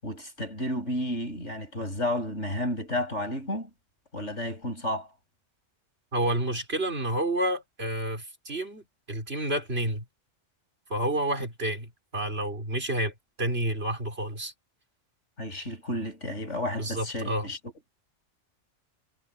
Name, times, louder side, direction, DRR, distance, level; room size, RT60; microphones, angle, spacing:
voice 1, 0.0-3.7 4.1-5.1 15.4-17.6, left 1 dB, 75° left, 7.6 m, -32 dB
voice 2, 6.1-10.0 10.9-14.5 16.8-17.5, right 1 dB, 60° right, 4.5 m, -30 dB
omnidirectional pair, 1.2 m